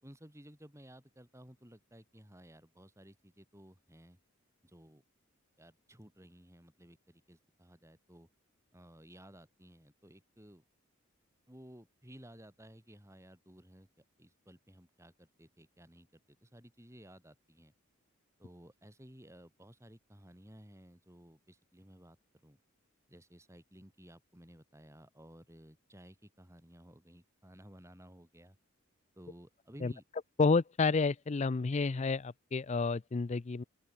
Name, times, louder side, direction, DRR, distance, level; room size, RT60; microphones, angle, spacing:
voice 1, 0.0-4.2 4.6-5.0 5.6-8.3 8.7-10.6 11.5-13.9 14.2-17.7 18.4-22.2 22.4-22.6 23.1-28.6 29.2-30.0, equal, 15° right, 4.5 m, -56 dB
voice 2, 30.4-33.6, left 4 dB, 30° left, 0.4 m, -30 dB
open air
head